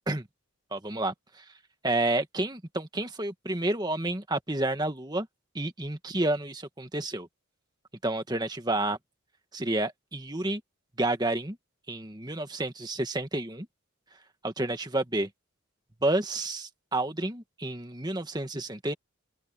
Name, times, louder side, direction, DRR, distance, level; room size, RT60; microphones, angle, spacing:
voice 1, 0.7-1.4 1.8-5.3 5.5-7.3 8.0-9.0 9.5-10.6 11.0-11.6 11.9-13.7 14.4-15.3 16.0-18.9, right 2 dB, 20° right, 1.7 m, -30 dB
open air
head